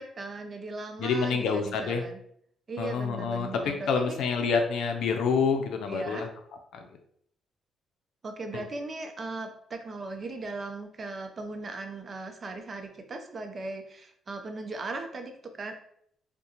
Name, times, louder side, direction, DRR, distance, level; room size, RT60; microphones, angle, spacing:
voice 1, 0.0-2.2 2.7-4.2 5.9-6.3 8.2-15.7, right 3 dB, 40° right, 5 dB, 0.5 m, -38 dB
voice 2, 1.0-2.0 2.8-6.3 6.7-6.9, left 5 dB, 75° left, 5 dB, 0.5 m, -27 dB
3.6 x 2.2 x 2.8 m, 0.66 s
cardioid pair, 90°, 0 cm